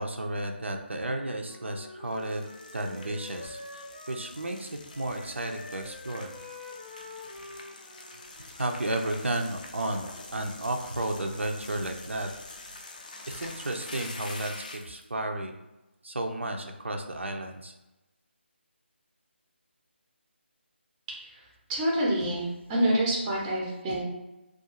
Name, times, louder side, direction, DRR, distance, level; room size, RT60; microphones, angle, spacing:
voice 1, 0.0-2.4 2.7-4.7 5.0-6.3 8.5-12.3 13.3-15.5 16.0-17.7, right 1 dB, 80° right, 4 dB, 0.4 m, -33 dB
Wind instrument woodwind instrument, 1.0-4.7 4.9-8.8, left 2 dB, 85° left, 0.9 m, -46 dB
sound 1, 2.0-15.0, left 3 dB, 40° left, 0.3 m, -46 dB
voice 2, 21.7-24.0, right 1 dB, 15° right, -4 dB, 0.5 m, -27 dB
2.4 x 2.3 x 2.8 m, 1.0 s
figure-of-eight pair, 155°, 6 cm